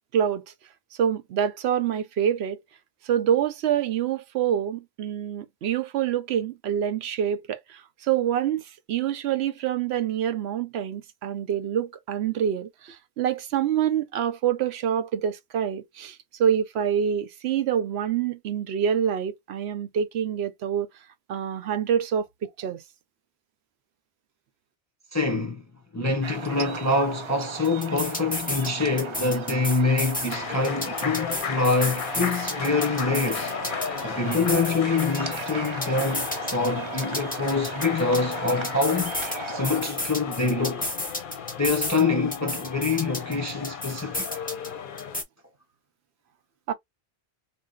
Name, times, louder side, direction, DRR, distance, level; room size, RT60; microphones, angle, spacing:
voice 1, 0.1-0.4 1.0-2.6 3.0-20.9 21.3-22.8 46.7-46.8, right 9 dB, 80° right, 0.8 m, -26 dB
voice 2, 25.1-25.6 25.9-33.6 34.0-39.2 39.5-40.9 41.6-44.2, left 3 dB, 25° left, 0.3 m, -25 dB
sound 1, 26.2-39.8, right 4 dB, 45° right, 0.3 m, -37 dB
sound 2, 27.6-28.7 29.0-30.3 30.6-34.0 34.3-36.7 37.0-39.4 39.6-42.0 42.3-44.7 45.0-45.2, left 1 dB, 10° left, 0.7 m, -32 dB
sound 3, 30.3-45.2, left 7 dB, 60° left, 0.7 m, -35 dB
2.6 x 2.0 x 3.5 m
omnidirectional pair, 1.1 m